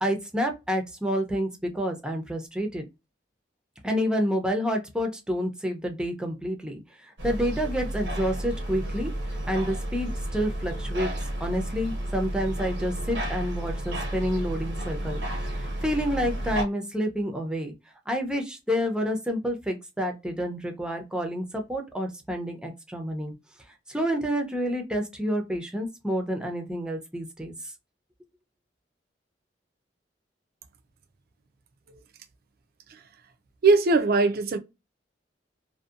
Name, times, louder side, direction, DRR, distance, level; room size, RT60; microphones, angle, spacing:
voice 1, 0.0-2.9 3.8-9.1 9.4-11.1 11.4-15.2 15.5-17.7 18.1-23.3 23.9-27.5, equal, 5° right, 0.5 m, -29 dB
sound 1, 7.2-16.6, right 1 dB, 80° right, 0.8 m, -32 dB
voice 2, 33.6-34.6, right 3 dB, 55° right, 0.4 m, -21 dB
2.6 x 2.2 x 2.4 m
head